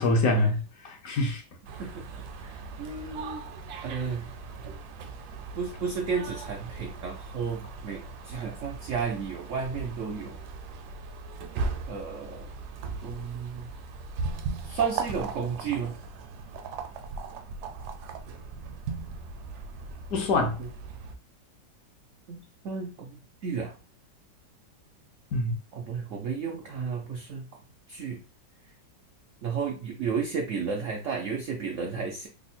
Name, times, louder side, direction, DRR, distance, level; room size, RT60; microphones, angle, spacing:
voice 1, 0.0-1.4 20.1-20.6 25.3-25.6, left 2 dB, 65° left, 1.0 m, -25 dB
sound 1, 1.6-21.1, right 4 dB, 75° right, 1.1 m, -38 dB
voice 2, 1.8-3.5 3.8-4.3 5.5-10.4 11.9-12.5 13.0-13.7 14.7-16.0 20.6-20.7 22.3-23.8 25.7-27.4 27.9-28.2 29.4-32.3, right 5 dB, 90° right, 0.6 m, -33 dB
3.4 x 2.0 x 4.1 m
omnidirectional pair, 2.0 m